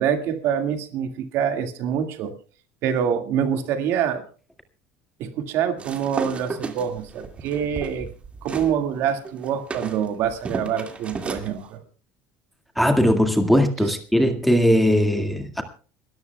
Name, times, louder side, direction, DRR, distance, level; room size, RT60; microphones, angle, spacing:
voice 1, 0.0-2.3 2.8-4.2 5.2-8.1 8.4-11.8 13.8-13.9, right 8 dB, 60° right, 2.0 m, -25 dB
sound 1, 5.8-8.7 9.1-11.5, right 4 dB, 25° right, 2.2 m, -33 dB
voice 2, 12.8-15.6, equal, ahead, 2.0 m, -19 dB
30.0 x 13.5 x 2.3 m
supercardioid pair, 125°, 5 cm